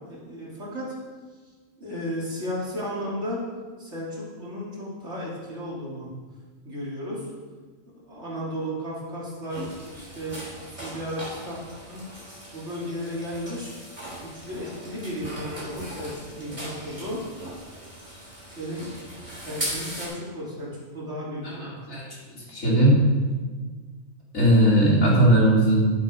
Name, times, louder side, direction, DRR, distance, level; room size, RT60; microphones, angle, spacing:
voice 1, 0.1-0.9 1.8-3.4 3.8-6.1 6.6-7.3 8.1-9.7 9.9-11.6 11.9-12.0 12.5-13.8 14.2-17.2 18.5-18.9 19.4-21.5, equal, 60° right, -5 dB, 3.2 m, -34 dB
sound 1, 9.5-20.1, right 1 dB, 25° right, 3.3 m, -39 dB
voice 2, 21.4-23.1 24.3-25.9, right 1 dB, 85° left, -6 dB, 4.0 m, -19 dB
11.0 x 8.4 x 5.2 m, 1.4 s
omnidirectional pair, 1.4 m